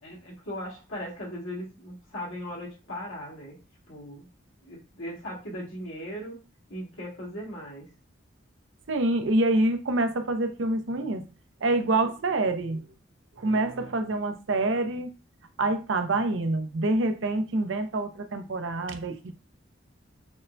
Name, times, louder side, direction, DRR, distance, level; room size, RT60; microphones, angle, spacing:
voice 1, 0.0-3.6 3.9-4.3 4.6-6.4 6.7-7.9, equal, 90° left, -5 dB, 1.8 m, -38 dB
voice 2, 8.9-11.3 11.6-12.8 13.4-15.1 15.6-19.3, right 2 dB, 75° right, 7 dB, 0.6 m, -26 dB
6.3 x 2.1 x 2.6 m, 0.33 s
head